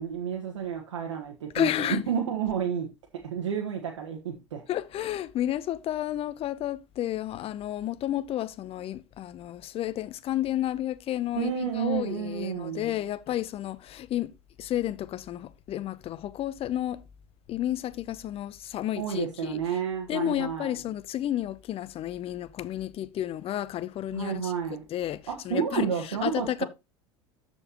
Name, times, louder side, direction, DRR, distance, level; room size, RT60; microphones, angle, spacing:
voice 1, 0.0-4.6 11.3-12.9 19.0-20.8 24.1-24.8 25.3-26.6, right 8 dB, 75° right, 1.4 m, -31 dB
voice 2, 1.5-2.0 4.7-14.3 14.6-17.0 17.5-19.6 20.1-24.5 24.9-26.6, left 12 dB, 40° left, 0.7 m, -31 dB
13.5 x 4.5 x 2.9 m
hypercardioid pair, 75°, 15 cm